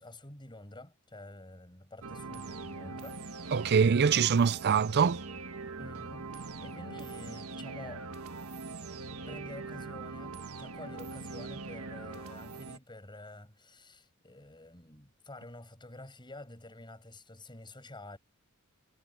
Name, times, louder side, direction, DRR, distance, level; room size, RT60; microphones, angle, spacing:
voice 1, 0.0-3.7 4.3-4.8 5.8-8.1 9.3-18.2, left 1 dB, 20° left, 7.7 m, -49 dB
sound 1, 2.0-12.8, right 3 dB, 80° right, 1.6 m, -42 dB
voice 2, 3.5-5.2, right 6 dB, 50° right, 0.5 m, -24 dB
head